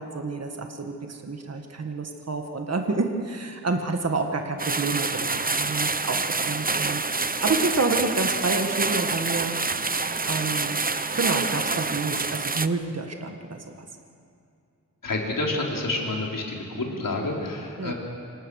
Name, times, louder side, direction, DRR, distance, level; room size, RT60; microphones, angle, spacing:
voice 1, 0.0-7.0 7.4-9.6 10.3-10.8 11.1-13.9 17.8-17.9, right 3 dB, 45° right, 4 dB, 1.9 m, -29 dB
sound 1, 4.6-12.7, right 3 dB, 25° right, 0.8 m, -27 dB
voice 2, 15.0-17.9, left 2 dB, 65° left, -1 dB, 4.6 m, -28 dB
28.5 x 25.5 x 6.6 m, 2.5 s
wide cardioid pair, 120°, 35 cm